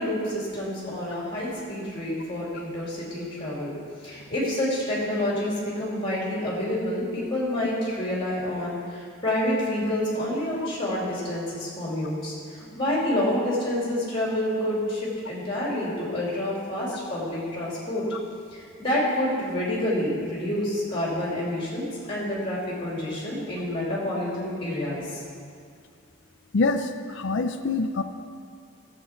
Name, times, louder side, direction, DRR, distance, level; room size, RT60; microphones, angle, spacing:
voice 1, 0.0-3.7 4.0-12.3 12.7-18.0 18.8-25.2, left 1 dB, 25° left, -5 dB, 2.8 m, -28 dB
voice 2, 26.5-28.0, left 3 dB, 60° left, 8 dB, 0.5 m, -25 dB
14.0 x 7.7 x 4.4 m, 2.2 s
head